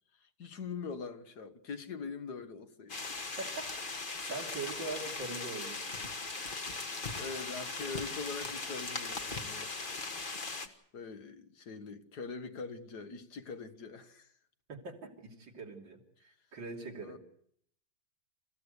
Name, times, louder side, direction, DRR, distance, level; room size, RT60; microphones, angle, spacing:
voice 1, 0.1-3.1 7.1-9.7 10.4-14.3 17.0-17.2, left 4 dB, 60° left, 1.9 m, -43 dB
sound 1, 2.9-10.7, left 3 dB, 30° left, 1.5 m, -39 dB
voice 2, 3.4-4.0 4.3-5.8 14.7-17.2, right 3 dB, 85° right, 3.8 m, -42 dB
28.0 x 15.5 x 8.1 m
omnidirectional pair, 2.0 m